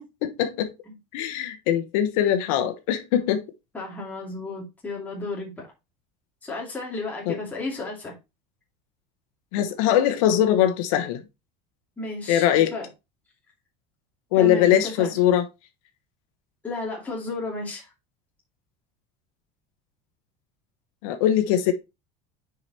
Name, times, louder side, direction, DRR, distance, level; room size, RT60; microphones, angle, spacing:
voice 1, 0.2-0.7 1.1-3.4 7.3-7.4 9.5-11.2 12.3-12.7 14.3-15.5 21.0-21.7, left 11 dB, 75° left, 1.1 m, -21 dB
voice 2, 3.7-5.7 6.4-8.2 12.0-12.4 12.7-12.8 14.3-15.1 16.6-17.9, left 3 dB, 10° left, 2.5 m, -33 dB
6.5 x 5.0 x 4.2 m
cardioid pair, 175°, 18 cm